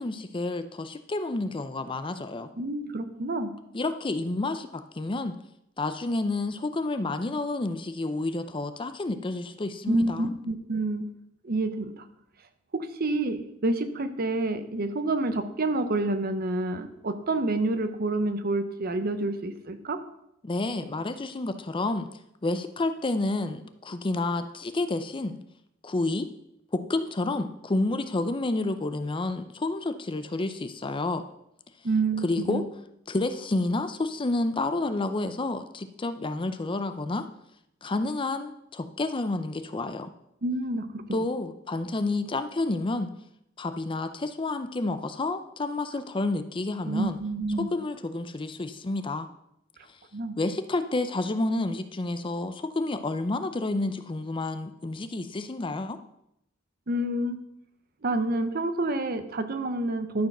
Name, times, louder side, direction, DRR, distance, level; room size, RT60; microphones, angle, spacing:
voice 1, 0.0-2.5 3.7-5.3 5.8-10.3 20.4-22.1 22.4-25.4 25.8-26.3 26.7-31.2 32.2-32.6 33.1-37.2 37.8-40.1 41.1-43.1 43.6-47.2 47.6-49.3 50.4-56.0, left 2 dB, 25° left, 10 dB, 0.5 m, -29 dB
voice 2, 2.6-3.5 9.9-11.1 11.4-12.1 12.7-20.0 31.8-32.6 40.4-41.0 46.8-47.7 50.1-50.4 56.9-57.4 58.0-60.3, right 2 dB, 50° right, 10 dB, 0.8 m, -28 dB
12.0 x 4.7 x 6.0 m, 0.80 s
head